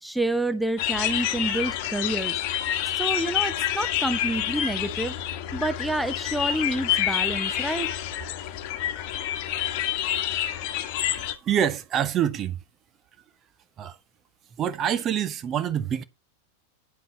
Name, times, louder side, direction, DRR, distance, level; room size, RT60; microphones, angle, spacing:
voice 1, 0.0-2.4 2.9-5.1 5.5-7.9, right 1 dB, ahead, 0.8 m, -28 dB
sound 1, 0.8-11.3, left 11 dB, 45° left, 1.4 m, -28 dB
voice 2, 11.2-12.6 13.8-14.0 14.6-16.0, right 9 dB, 30° right, 1.0 m, -26 dB
9.4 x 7.8 x 4.3 m
figure-of-eight pair, 90°, 0 cm